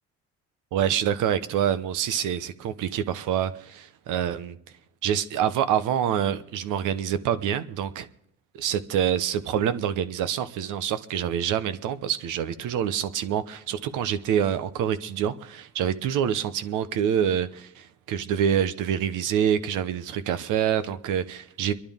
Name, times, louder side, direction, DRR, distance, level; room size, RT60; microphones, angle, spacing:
voice 1, 0.7-4.6 5.0-8.1 8.5-21.7, right 9 dB, 90° right, 0.8 m, -26 dB
26.0 x 11.0 x 3.6 m
cardioid pair, 90°, 30 cm